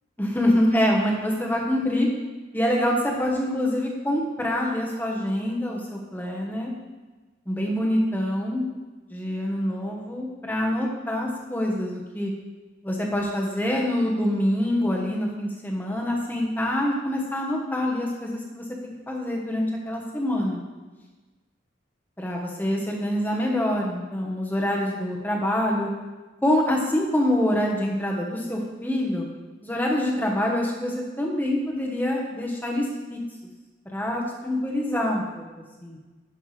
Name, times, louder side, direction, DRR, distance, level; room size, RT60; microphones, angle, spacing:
voice 1, 0.2-2.1 2.5-6.8 7.5-8.7 9.1-12.3 12.8-20.6 22.2-25.9 26.4-29.3 29.6-33.2 33.9-35.4 35.8-36.0, left 1 dB, 10° left, -1 dB, 1.1 m, -25 dB
11.5 x 5.7 x 3.3 m, 1.2 s
head